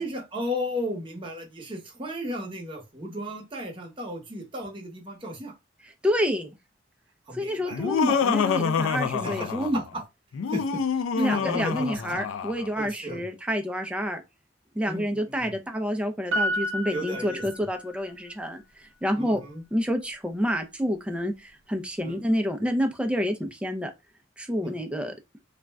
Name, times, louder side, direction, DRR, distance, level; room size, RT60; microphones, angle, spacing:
voice 1, 0.0-5.5 7.3-8.0 9.2-9.8 10.5-10.6 11.3-12.0 12.8-13.2 14.9-15.5 16.9-17.4 19.2-19.6 22.0-22.2 24.6-24.7, equal, 25° right, 0.9 m, -35 dB
voice 2, 6.0-6.5 7.3-9.8 11.2-14.2 14.8-19.4 19.7-23.9 24.4-25.1, equal, 5° right, 0.4 m, -28 dB
Laughter, 7.7-9.9 10.3-12.7, left 6 dB, 90° left, 0.4 m, -27 dB
Piano, 16.3-18.1 18.4-18.5, equal, 80° right, 0.6 m, -30 dB
2.4 x 2.1 x 3.4 m
head